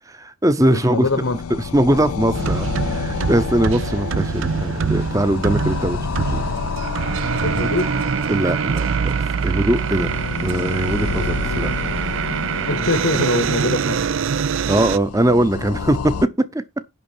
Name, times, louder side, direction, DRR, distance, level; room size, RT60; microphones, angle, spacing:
voice 1, 0.1-1.1 1.7-6.4 8.3-9.2 9.4-10.1 10.4-11.7 14.7-16.6, right 1 dB, 15° right, 0.8 m, -21 dB
sound 1, 0.7-16.3, left 6 dB, 90° left, 0.5 m, -30 dB
voice 2, 0.7-1.4 7.4-7.9 12.7-14.0, left 3 dB, 70° left, 1.1 m, -22 dB
sound 2, 2.3-15.0, right 6 dB, 65° right, 0.4 m, -24 dB
11.0 x 3.8 x 7.3 m
head